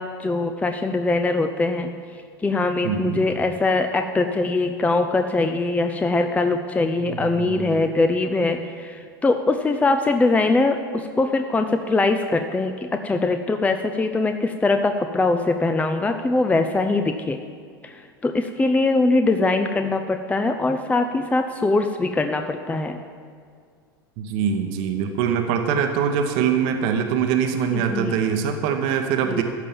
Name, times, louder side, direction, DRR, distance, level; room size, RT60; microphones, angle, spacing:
voice 1, 0.0-1.9 2.4-17.4 17.8-23.0 27.7-28.2 29.3-29.4, left 3 dB, 10° left, 6 dB, 0.5 m, -22 dB
voice 2, 2.8-3.2 7.0-7.8 24.2-29.4, right 7 dB, 55° right, 5 dB, 1.0 m, -23 dB
14.0 x 5.3 x 7.2 m, 2.1 s
hypercardioid pair, 85°, 12 cm